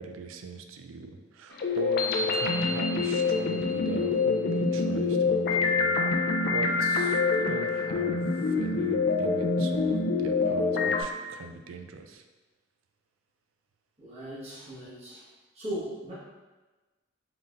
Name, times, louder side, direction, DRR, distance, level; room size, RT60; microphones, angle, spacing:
voice 1, 0.0-6.0 6.5-12.2, right 4 dB, 75° right, 6 dB, 0.4 m, -40 dB
sound 1, 1.6-11.0, left 4 dB, 50° left, 0.4 m, -26 dB
voice 2, 14.0-15.3 15.5-16.1, right 1 dB, 30° right, -11 dB, 1.3 m, -38 dB
3.9 x 3.7 x 2.5 m, 1.2 s
head